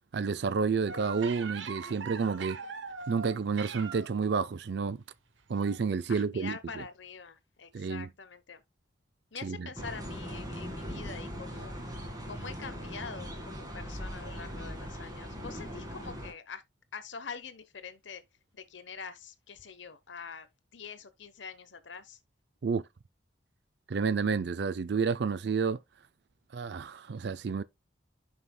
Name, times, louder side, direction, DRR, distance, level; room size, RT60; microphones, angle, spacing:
voice 1, 0.1-2.6 3.1-5.0 5.5-6.8 7.7-8.1 9.4-9.7 22.6-22.8 23.9-25.8 26.5-27.6, right 5 dB, 60° right, 0.4 m, -30 dB
sound 1, 0.9-4.2 5.5-5.8 6.1-6.2, right 5 dB, 75° right, 1.0 m, -41 dB
voice 2, 6.1-8.6 9.3-11.8 12.3-16.6 16.9-18.2 18.5-20.5 20.7-22.2, left 5 dB, 70° left, 1.0 m, -45 dB
sound 2, 9.8-16.3, equal, 20° right, 2.0 m, -40 dB
11.5 x 5.5 x 2.3 m
head